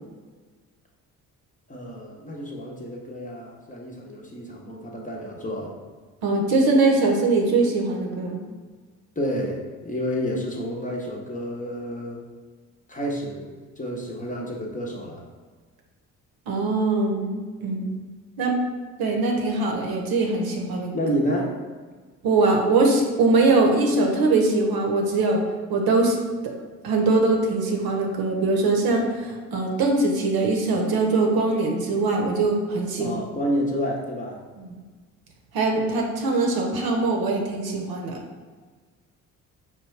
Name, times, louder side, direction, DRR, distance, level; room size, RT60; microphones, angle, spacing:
voice 1, 1.7-5.8 9.2-12.2 12.9-15.3 20.9-21.6 33.0-34.4, equal, 20° left, -2 dB, 0.8 m, -29 dB
voice 2, 6.2-8.4 16.5-18.0 18.4-18.6 19.0-20.9 22.2-25.4 25.7-26.2 26.8-33.1 34.7-34.8 35.5-38.2, right 3 dB, 60° right, 1 dB, 0.9 m, -22 dB
4.9 x 2.2 x 3.2 m, 1.4 s
hypercardioid pair, 50°, 42 cm